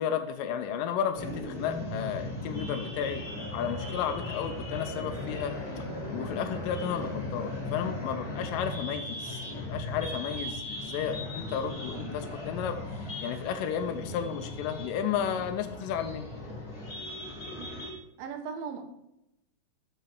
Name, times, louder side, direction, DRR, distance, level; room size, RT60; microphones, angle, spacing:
voice 1, 0.0-3.2 3.5-5.5 6.1-12.8 13.2-16.3, left 8 dB, 80° left, 7 dB, 2.2 m, -33 dB
sound 1, 1.1-17.9, left 1 dB, 30° left, 2.4 m, -38 dB
sound 2, 3.2-8.7, left 2 dB, 55° left, 2.5 m, -44 dB
voice 2, 18.2-18.8, right 6 dB, 85° right, 4 dB, 2.9 m, -39 dB
7.8 x 6.8 x 4.6 m, 0.84 s
omnidirectional pair, 4.1 m